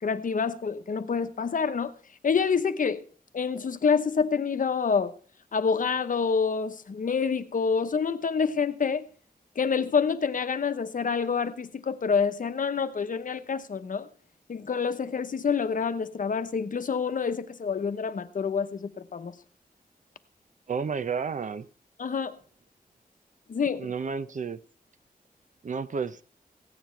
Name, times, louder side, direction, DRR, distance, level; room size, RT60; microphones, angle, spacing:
voice 1, 0.0-1.9 2.2-3.0 3.3-5.1 5.5-9.0 9.6-14.1 14.5-19.3 22.0-22.4 23.5-23.9, left 6 dB, 60° left, 0.9 m, -27 dB
voice 2, 20.7-21.7 23.8-24.6 25.6-26.2, right 5 dB, 55° right, 0.6 m, -31 dB
15.5 x 9.5 x 4.4 m
wide cardioid pair, 130°, 16 cm